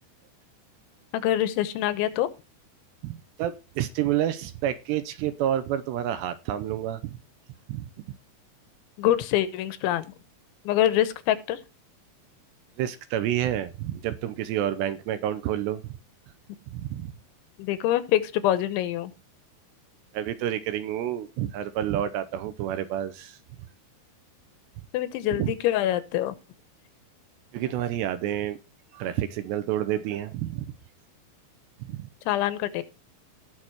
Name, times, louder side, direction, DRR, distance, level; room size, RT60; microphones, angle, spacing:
voice 1, 1.1-2.3 9.0-10.1 10.6-11.6 17.6-19.1 24.9-26.3 32.3-32.8, left 12 dB, 85° left, 3.2 m, -25 dB
voice 2, 3.0-7.2 7.7-7.9 12.8-15.8 16.7-17.1 20.1-23.4 25.4-25.5 27.5-28.6 28.9-30.7 31.8-32.1, right 11 dB, 80° right, 2.7 m, -29 dB
18.5 x 6.5 x 3.0 m
omnidirectional pair, 5.5 m